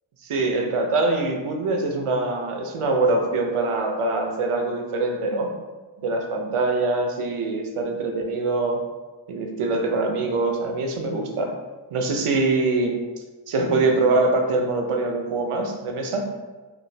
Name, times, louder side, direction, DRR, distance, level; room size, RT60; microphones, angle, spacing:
voice 1, 0.2-5.6 6.0-8.8 9.3-11.5 11.9-13.0 13.5-16.3, right 2 dB, 85° right, 3 dB, 0.6 m, -23 dB
2.9 x 2.4 x 2.6 m, 1.3 s
wide cardioid pair, 45°, 50 cm